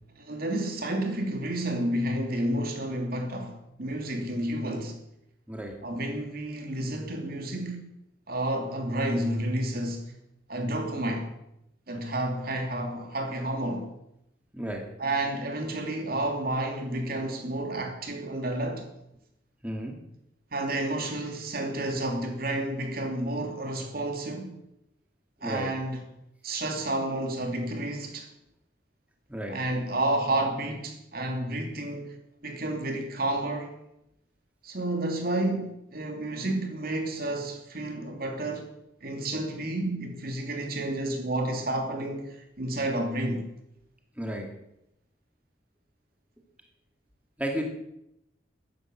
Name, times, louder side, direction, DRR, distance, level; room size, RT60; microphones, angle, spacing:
voice 1, 0.2-5.0 5.8-7.9 8.3-10.1 10.5-11.3 11.9-13.9 15.0-18.9 20.5-24.5 25.4-26.0 26.4-28.3 29.5-32.1 32.4-33.7 34.6-38.7 39.0-43.4, right 1 dB, 55° right, 2.9 m, -30 dB
voice 2, 14.5-14.9 19.6-20.0 25.4-25.7 29.3-29.6 44.2-44.5 47.4-47.6, equal, 10° right, 2.2 m, -33 dB
13.5 x 10.5 x 7.8 m
head